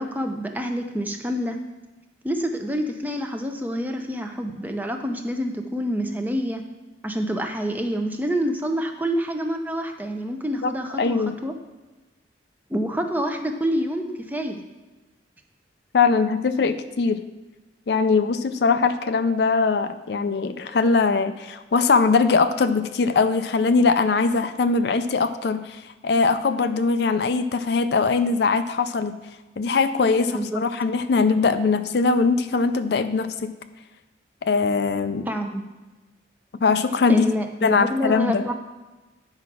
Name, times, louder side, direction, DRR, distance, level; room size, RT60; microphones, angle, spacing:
voice 1, 0.0-1.6 2.2-6.6 7.0-11.5 12.7-14.6 30.3-30.6 35.3-35.6 37.1-38.5, equal, 10° right, 4 dB, 0.6 m, -27 dB
voice 2, 11.0-11.4 15.9-17.2 17.9-29.2 29.6-33.5 34.4-35.3 36.6-37.2 37.6-38.4, left 4 dB, 60° left, 10 dB, 0.4 m, -21 dB
9.5 x 4.8 x 6.0 m, 1.2 s
head